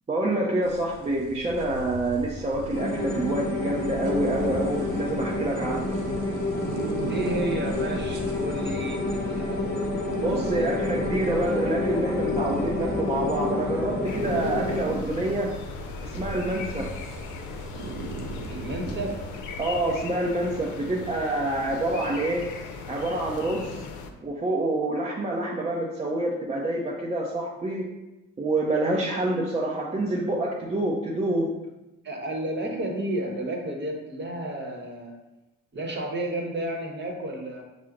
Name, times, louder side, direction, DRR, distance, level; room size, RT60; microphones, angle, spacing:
voice 1, 0.1-5.9 10.2-15.5 16.0-16.9 19.6-22.5 22.9-23.8 24.2-27.9 28.4-31.5, right 1 dB, 20° right, -3 dB, 0.5 m, -27 dB
sound 1, 0.6-20.0, right 2 dB, 85° right, 0.7 m, -38 dB
sound 2, 2.7-14.8, left 2 dB, 35° left, 1.0 m, -29 dB
voice 2, 7.1-9.9 10.3-10.7 18.5-19.2 28.9-29.0 32.0-35.1 35.7-37.6, right 1 dB, 35° right, 1 dB, 0.9 m, -32 dB
sound 3, 14.0-24.1, left 4 dB, 75° left, 0.5 m, -39 dB
5.6 x 2.1 x 3.7 m, 1.0 s
cardioid pair, 90°, 30 cm